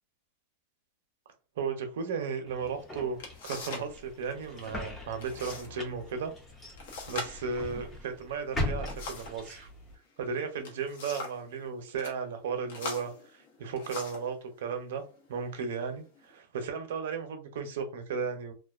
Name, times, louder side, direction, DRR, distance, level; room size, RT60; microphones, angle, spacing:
voice 1, 1.6-3.2 3.4-6.3 7.1-9.7 10.2-15.0 15.3-18.5, right 5 dB, 70° right, 0.6 m, -35 dB
sound 1, 2.5-9.9, left 1 dB, 10° left, 0.5 m, -40 dB
sound 2, 2.7-2.8 3.2-3.9 4.2-4.7 5.2-5.7 6.0-6.1 6.8-9.4 10.4-11.5 11.9-12.2 12.7-14.3 15.1-15.3 15.8-16.3, left 3 dB, 70° left, 0.8 m, -42 dB
2.4 x 2.2 x 2.3 m
supercardioid pair, 160°, 0 cm